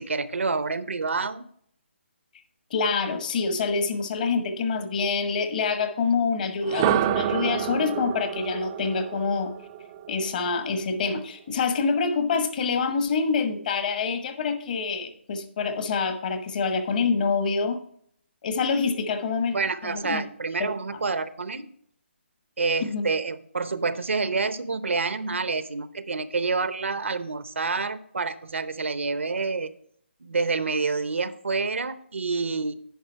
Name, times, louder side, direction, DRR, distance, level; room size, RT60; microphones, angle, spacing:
voice 1, 0.0-1.5 19.5-21.7 22.6-29.7 30.2-32.7, right 4 dB, 80° right, 14 dB, 0.7 m, -28 dB
voice 2, 2.7-9.5 10.1-17.8 18.4-19.6 19.8-20.2 20.6-21.0 22.8-23.0, left 5 dB, 45° left, 9 dB, 1.2 m, -26 dB
sound 1, 6.6-10.6, right 10 dB, 20° right, 0.4 m, -28 dB
10.0 x 4.9 x 4.5 m, 0.65 s
hypercardioid pair, 155°, 7 cm